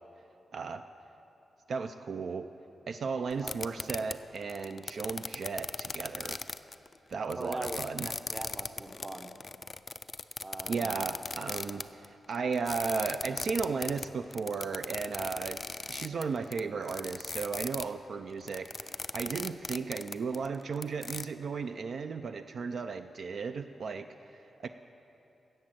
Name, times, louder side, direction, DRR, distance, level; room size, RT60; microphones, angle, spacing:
voice 1, 0.5-0.8 1.7-2.5 2.9-6.4 7.1-8.1 10.7-15.6 15.9-24.7, right 5 dB, 55° right, 8 dB, 0.3 m, -35 dB
sound 1, 3.3-17.9 18.3-21.2, left 3 dB, 30° left, 0.3 m, -38 dB
voice 2, 7.4-9.3 10.4-11.0, right 1 dB, 15° right, 7 dB, 0.7 m, -41 dB
13.5 x 7.6 x 8.9 m, 2.9 s
wide cardioid pair, 160°, 0 cm